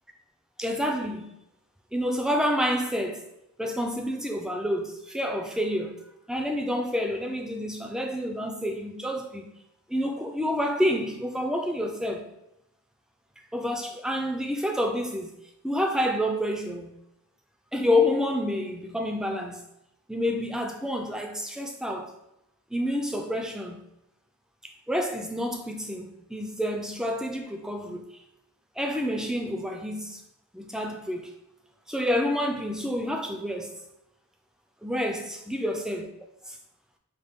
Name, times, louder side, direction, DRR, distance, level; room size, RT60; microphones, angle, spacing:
voice 1, 0.6-1.3 1.9-3.3 3.6-6.0 6.3-9.5 9.9-12.3 13.5-15.3 15.6-16.9 17.7-19.6 20.1-22.1 22.7-23.8 24.9-28.1 28.8-30.2 30.5-31.3 31.9-33.7 34.8-36.1 36.5-36.6, left 1 dB, 5° right, 0.3 m, -28 dB
5.1 x 2.2 x 3.4 m
head